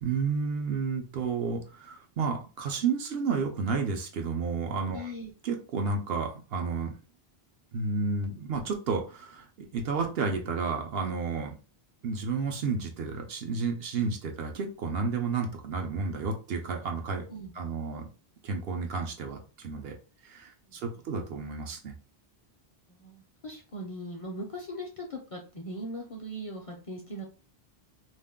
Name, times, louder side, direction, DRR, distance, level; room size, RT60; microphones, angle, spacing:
voice 1, 0.0-5.1 5.4-6.9 7.7-11.5 12.0-17.2 17.6-18.1 18.4-19.9 20.2-21.9, right 4 dB, 70° right, 3 dB, 0.9 m, -31 dB
voice 2, 4.9-5.3 17.3-17.6 20.7-21.0 22.9-27.2, equal, 45° left, 1 dB, 0.5 m, -40 dB
2.5 x 2.1 x 3.5 m, 0.34 s
omnidirectional pair, 1.0 m